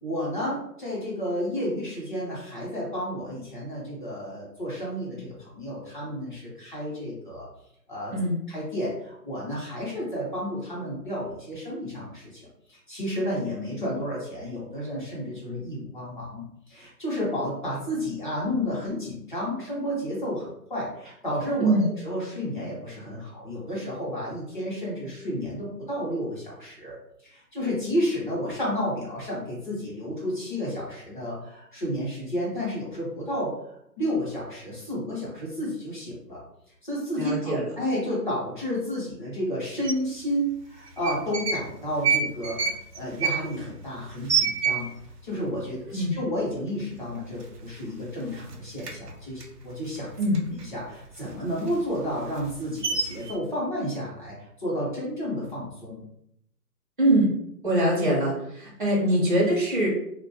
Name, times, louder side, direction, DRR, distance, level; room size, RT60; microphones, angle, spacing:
voice 1, 0.0-7.5 7.9-8.1 8.5-27.0 27.2-36.4 36.8-44.9 45.2-50.1 50.6-56.0, equal, 30° left, -6 dB, 0.8 m, -31 dB
voice 2, 37.2-37.7 45.9-46.2 50.2-50.4 57.0-57.3 57.6-59.9, right 1 dB, 35° right, -6 dB, 0.5 m, -23 dB
sound 1, 39.8-39.9 40.9-41.7 42.0-45.2 45.5-45.6 45.9-46.4 46.8-46.9 47.2-48.0 48.3-50.7 51.1-53.3, right 6 dB, 75° right, 0.7 m, -28 dB
2.4 x 2.1 x 2.8 m, 0.75 s
hypercardioid pair, 170°, 48 cm